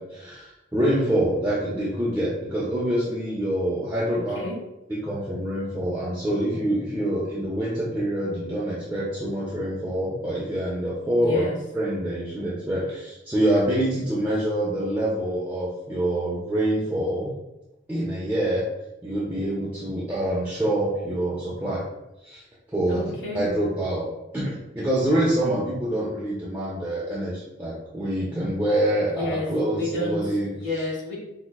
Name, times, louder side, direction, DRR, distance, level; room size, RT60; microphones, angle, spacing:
voice 1, 0.0-4.4 4.9-11.5 11.7-17.3 17.9-18.7 19.0-21.9 22.2-22.4 22.7-23.0 23.3-24.1 24.3-30.5, right 1 dB, 10° right, -7 dB, 0.4 m, -26 dB
voice 2, 4.1-4.5 11.1-11.6 22.9-23.4 29.1-31.2, left 2 dB, 70° left, -5 dB, 1.1 m, -30 dB
4.5 x 2.1 x 2.3 m, 0.93 s
head